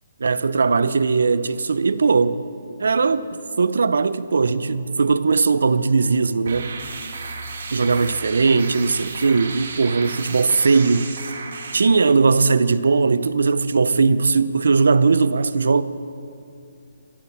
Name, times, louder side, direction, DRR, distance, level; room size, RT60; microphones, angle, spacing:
voice 1, 0.2-2.4 2.8-6.7 7.7-11.1 11.7-15.8, right 4 dB, 85° right, 0.6 m, -19 dB
sound 1, 6.5-11.8, right 4 dB, 55° right, 1.7 m, -33 dB
15.0 x 11.5 x 7.2 m
hypercardioid pair, 175°, 0 cm